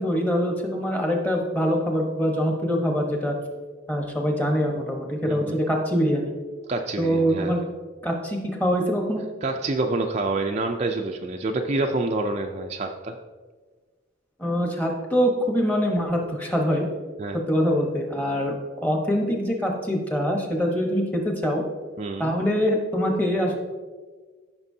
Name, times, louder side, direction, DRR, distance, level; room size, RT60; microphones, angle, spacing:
voice 1, 0.0-3.4 3.9-6.4 7.0-7.6 8.0-9.3 14.4-16.9 17.3-18.5 18.8-21.6 22.2-23.6, equal, 10° left, 1 dB, 1.0 m, -24 dB
voice 2, 5.2-5.6 6.7-7.6 9.4-13.2 17.2-17.4 22.0-22.3, right 2 dB, 35° right, 3 dB, 0.4 m, -27 dB
14.0 x 6.0 x 2.7 m, 1.4 s
head